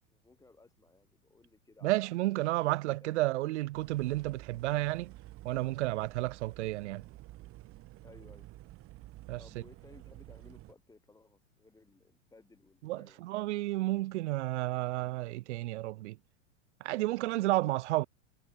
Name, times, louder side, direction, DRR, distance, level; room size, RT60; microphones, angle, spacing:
voice 1, 0.1-2.1 2.8-3.2 8.0-8.5 9.4-13.2, left 3 dB, 10° left, 5.6 m, -59 dB
voice 2, 1.8-5.1 5.4-7.0 9.3-9.4 12.8-16.2 16.8-18.1, right 18 dB, 65° right, 0.6 m, -31 dB
sound 1, 3.7-10.7, right 17 dB, 35° right, 1.6 m, -51 dB
hypercardioid pair, 115°, 37 cm